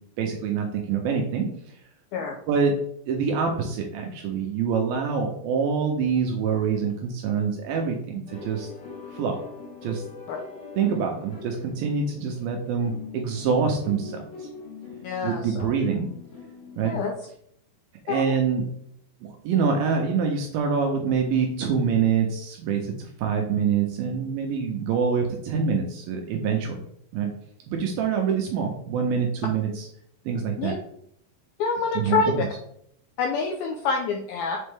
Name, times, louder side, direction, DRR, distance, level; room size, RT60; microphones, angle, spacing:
voice 1, 0.2-1.5 2.5-2.7 3.1-8.7 9.1-9.4 9.8-10.0 10.8-14.5 15.2-16.1 16.8-17.0 18.1-18.7 19.2-26.8 27.1-27.3 27.7-29.9 30.3-30.7 32.0-32.5, right 6 dB, 80° right, 2 dB, 2.1 m, -25 dB
sound 1, 8.3-16.8, left 5 dB, 65° left, 3.0 m, -42 dB
voice 2, 15.0-15.7 16.8-17.1 18.1-18.3 30.6-30.8 31.6-32.4 33.2-34.6, left 4 dB, 80° left, 1 dB, 2.1 m, -26 dB
7.1 x 4.3 x 3.5 m, 0.69 s
omnidirectional pair, 5.0 m